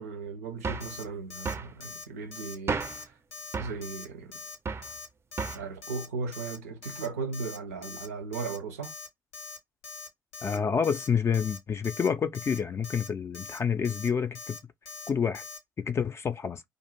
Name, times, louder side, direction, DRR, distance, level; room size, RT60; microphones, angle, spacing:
voice 1, 0.0-3.2 3.6-4.4 5.5-8.9, right 4 dB, 90° right, 0.5 m, -37 dB
sound 1, 0.6-1.0 1.4-1.7 2.7-3.1 3.5-3.8 4.6-4.9 5.4-5.7, right 4 dB, 35° right, 0.4 m, -33 dB
Alarm, 0.8-1.0 1.3-1.5 1.8-2.0 2.3-2.6 2.8-3.0 3.3-3.5 3.8-4.1 4.3-4.6 4.8-5.1 5.3-5.6 5.8-6.1 6.3-6.6 6.8-7.1 7.3-7.6 7.8-8.1 8.3-8.6 8.8-9.1 9.3-9.6 9.8-10.1 10.3-10.6 10.8-11.1 11.3-11.6 11.8-12.1 12.3-12.6 12.8-13.1 13.3-13.6 13.8-14.1 14.4-14.6 14.9-15.1 15.3-15.6, left 4 dB, 80° left, 0.6 m, -42 dB
voice 2, 10.4-14.6 15.1-15.4 15.9-16.6, left 6 dB, 35° left, 0.3 m, -28 dB
2.4 x 2.2 x 2.9 m
hypercardioid pair, 50°, 8 cm